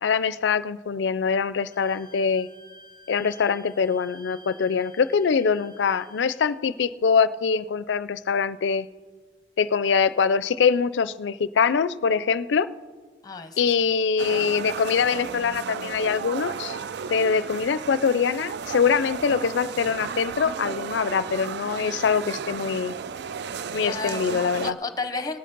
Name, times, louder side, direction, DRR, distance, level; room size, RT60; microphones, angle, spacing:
voice 1, 0.0-2.5 3.1-8.9 9.6-12.7 13.6-16.8 17.1-23.0 23.7-24.8, left 6 dB, 70° left, 16 dB, 0.4 m, -23 dB
Wind instrument woodwind instrument, 1.7-6.4, equal, 5° left, 1.7 m, -51 dB
voice 2, 13.2-13.6 23.8-25.4, left 3 dB, 20° left, 9 dB, 0.8 m, -32 dB
sound 1, 14.2-24.7, right 6 dB, 65° right, 0.4 m, -34 dB
19.0 x 7.6 x 5.3 m, 1.5 s
head